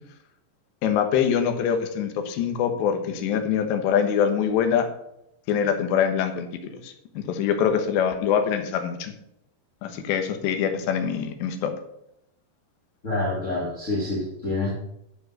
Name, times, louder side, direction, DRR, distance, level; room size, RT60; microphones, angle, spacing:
voice 1, 0.8-4.9 5.5-9.1 9.8-11.7, left 8 dB, 75° left, 6 dB, 3.3 m, -24 dB
voice 2, 13.0-14.7, left 2 dB, 30° left, -6 dB, 1.4 m, -27 dB
12.0 x 5.5 x 6.4 m, 0.80 s
omnidirectional pair, 5.2 m